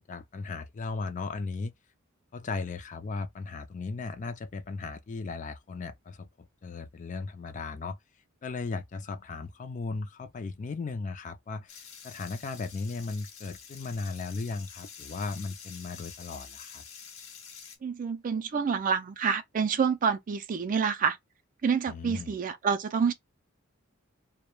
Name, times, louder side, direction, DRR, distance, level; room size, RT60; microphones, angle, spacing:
voice 1, 0.1-1.7 2.3-8.0 8.4-11.7 12.0-16.8 21.9-22.3, left 4 dB, 35° left, 0.4 m, -36 dB
sound 1, 11.7-17.8, left 6 dB, 65° left, 0.7 m, -48 dB
voice 2, 17.8-21.2 21.6-23.1, right 6 dB, 40° right, 0.3 m, -28 dB
2.2 x 2.1 x 3.0 m
head